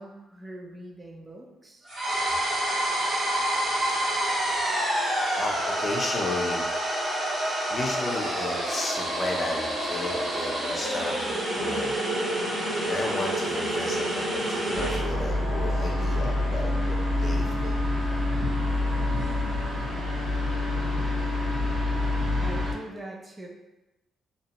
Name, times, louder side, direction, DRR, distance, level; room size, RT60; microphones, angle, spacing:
voice 1, 0.0-1.9 22.4-23.5, right 1 dB, 20° right, 0 dB, 0.5 m, -42 dB
sound 1, 1.9-15.1, right 1 dB, 45° right, 0.8 m, -28 dB
voice 2, 5.4-6.7 7.7-12.3 12.8-17.8, left 2 dB, 35° left, 0 dB, 0.6 m, -33 dB
sound 2, 11.5-16.6, left 6 dB, 80° left, 0.4 m, -44 dB
sound 3, 14.7-22.7, left 2 dB, 80° right, 1.4 m, -27 dB
2.8 x 2.1 x 2.8 m, 1.0 s
cardioid pair, 90°, 0 cm